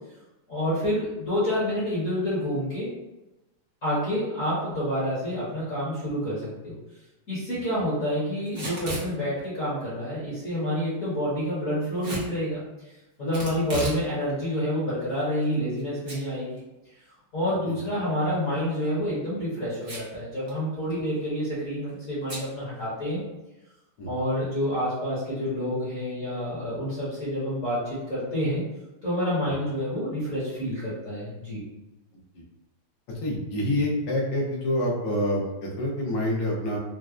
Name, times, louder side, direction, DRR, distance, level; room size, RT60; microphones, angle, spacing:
voice 1, 0.5-2.9 3.8-6.8 7.3-12.6 13.2-16.6 17.3-23.2 24.1-28.6 29.0-31.7, equal, 45° left, -10 dB, 1.3 m, -28 dB
Packing tape duct tape / Tearing, 8.5-9.1 12.0-12.3 13.3-14.0 14.4-14.5 15.2-15.8 16.1-16.2 16.6-16.7 18.6-18.9 19.8-20.2 20.5-20.6 20.8-21.2 22.3-22.5, right 1 dB, 60° right, 0.4 m, -34 dB
voice 2, 33.2-36.8, left 1 dB, 85° left, -3 dB, 1.7 m, -27 dB
4.6 x 2.0 x 2.4 m, 0.99 s
omnidirectional pair, 2.4 m